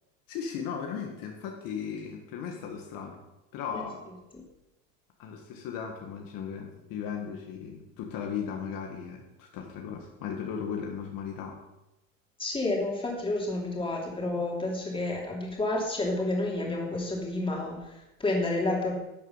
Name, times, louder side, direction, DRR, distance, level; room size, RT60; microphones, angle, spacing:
voice 1, 0.3-3.2 3.5-4.0 5.2-11.6, left 7 dB, 55° left, 2 dB, 1.7 m, -36 dB
voice 2, 12.4-18.9, left 2 dB, 15° left, -1 dB, 2.9 m, -30 dB
12.0 x 6.6 x 5.7 m, 0.93 s
supercardioid pair, 120°, 41 cm